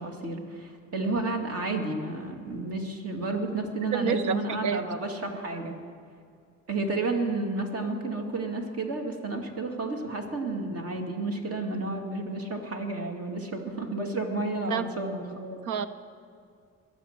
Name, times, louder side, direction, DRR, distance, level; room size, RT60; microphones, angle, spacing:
voice 1, 0.0-5.8 6.7-15.6, right 2 dB, 50° right, 3 dB, 2.3 m, -31 dB
voice 2, 3.9-4.8 14.7-14.9 15.6-15.9, right 7 dB, 80° right, 13 dB, 0.8 m, -28 dB
22.0 x 7.4 x 6.7 m, 2.3 s
cardioid pair, 90°, 30 cm